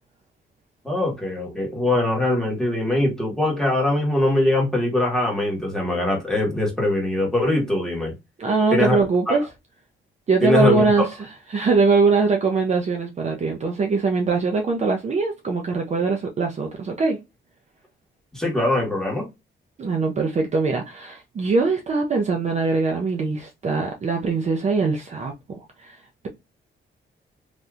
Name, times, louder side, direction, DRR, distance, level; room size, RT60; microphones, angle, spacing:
voice 1, 0.8-8.1 8.7-9.0 9.3-9.4 10.4-11.1 18.3-19.3, left 1 dB, ahead, 1.3 m, -22 dB
voice 2, 8.4-9.4 10.3-17.2 19.8-26.3, right 4 dB, 35° right, 0.5 m, -22 dB
3.4 x 2.7 x 2.4 m
wide cardioid pair, 165°, 20 cm